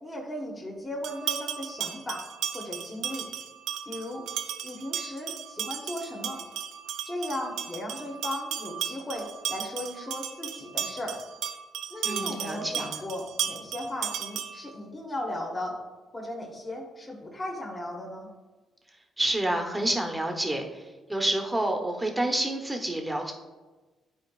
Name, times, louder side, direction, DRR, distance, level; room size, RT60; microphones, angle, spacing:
voice 1, 0.0-2.2 2.5-3.3 3.8-4.3 4.6-6.4 7.0-11.2 11.9-15.8 16.1-18.3, left 1 dB, 20° left, -3 dB, 1.5 m, -36 dB
sound 1, 1.0-14.7, right 9 dB, 85° right, 0.4 m, -35 dB
voice 2, 12.0-12.9 19.2-23.3, right 1 dB, 15° right, 3 dB, 1.1 m, -29 dB
11.0 x 4.5 x 2.4 m, 1.2 s
cardioid pair, 90°, 0 cm